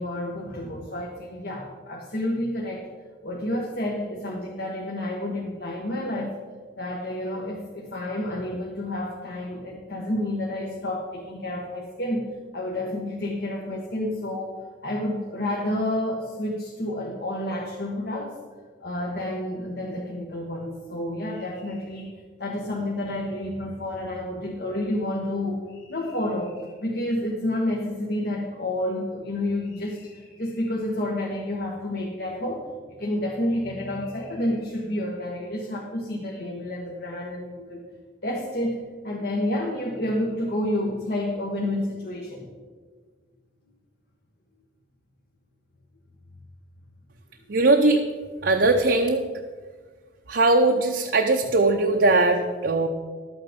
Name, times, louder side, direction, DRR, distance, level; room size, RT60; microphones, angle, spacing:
voice 1, 0.0-2.9 3.2-6.4 6.8-18.4 18.8-37.8 38.2-42.5, left 1 dB, 55° left, -2 dB, 1.5 m, -30 dB
voice 2, 47.5-48.0 48.4-49.3 50.3-52.9, right 2 dB, 60° right, 2 dB, 0.8 m, -20 dB
12.0 x 8.8 x 5.2 m, 1.5 s
head